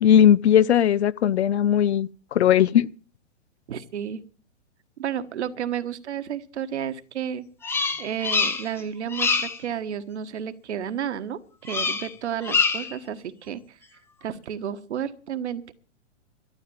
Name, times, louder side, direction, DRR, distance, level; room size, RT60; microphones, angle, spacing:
voice 1, 0.0-2.9, left 10 dB, 60° left, 0.7 m, -18 dB
voice 2, 3.7-4.2 5.0-7.4 8.0-13.8 14.2-15.7, right 9 dB, 60° right, 1.4 m, -32 dB
Bird vocalization bird call bird song, 7.6-8.8 9.1-9.6 11.7-12.1 12.4-13.0, left 5 dB, 5° left, 0.6 m, -25 dB
13.0 x 7.8 x 8.8 m
figure-of-eight pair, 120°, 38 cm